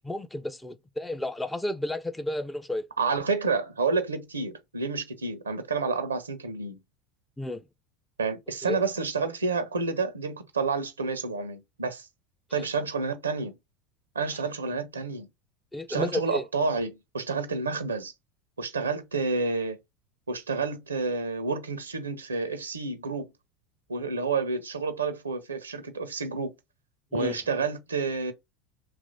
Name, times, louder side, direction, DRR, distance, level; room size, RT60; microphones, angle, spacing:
voice 1, 0.0-2.9 7.4-7.6 8.6-8.8 12.6-12.7 15.7-16.5 27.1-27.3, left 1 dB, 10° left, 0.3 m, -32 dB
voice 2, 3.0-6.8 8.2-12.1 12.5-13.5 14.1-15.3 15.9-18.1 18.6-19.8 20.3-23.3 23.9-26.5 27.1-28.3, right 4 dB, 75° right, 0.5 m, -29 dB
3.0 x 2.5 x 3.8 m
figure-of-eight pair, 75°, 0 cm